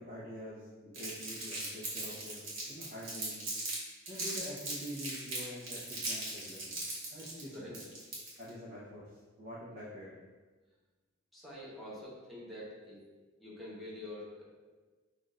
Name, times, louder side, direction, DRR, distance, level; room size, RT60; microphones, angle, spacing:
voice 1, 0.0-3.4 4.1-6.8 7.1-7.8 8.4-9.0 9.4-10.1, equal, 50° right, -9 dB, 0.8 m, -46 dB
Crumpling crinkling, 0.9-3.8 4.1-8.5, right 2 dB, 70° right, 1.3 m, -39 dB
voice 2, 11.3-13.0 13.4-14.4, left 1 dB, ahead, -7 dB, 1.0 m, -46 dB
6.0 x 2.5 x 2.5 m, 1.3 s
head